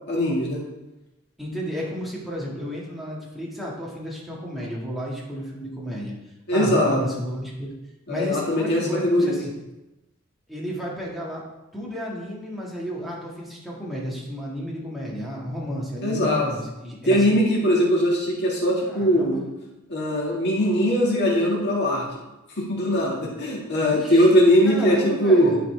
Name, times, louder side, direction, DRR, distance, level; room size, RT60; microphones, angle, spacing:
voice 1, 0.1-0.6 6.5-7.0 8.1-9.4 16.0-16.5 17.1-19.4 19.9-22.1 22.6-25.6, equal, 55° left, -3 dB, 1.7 m, -20 dB
voice 2, 1.4-6.1 6.5-7.7 8.1-9.5 10.5-11.4 11.7-17.4 18.8-19.4 23.8-25.6, equal, ahead, -5 dB, 1.6 m, -32 dB
10.5 x 4.2 x 3.3 m, 0.99 s
head